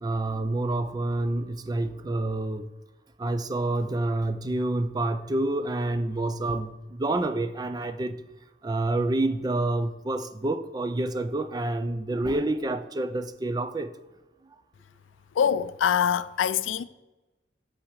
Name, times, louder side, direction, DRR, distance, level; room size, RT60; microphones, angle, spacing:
voice 1, 0.0-2.7 3.2-8.2 8.6-13.9, right 2 dB, 20° right, 0.4 m, -28 dB
voice 2, 15.4-16.8, left 8 dB, 80° left, 0.3 m, -24 dB
5.9 x 5.6 x 6.5 m
head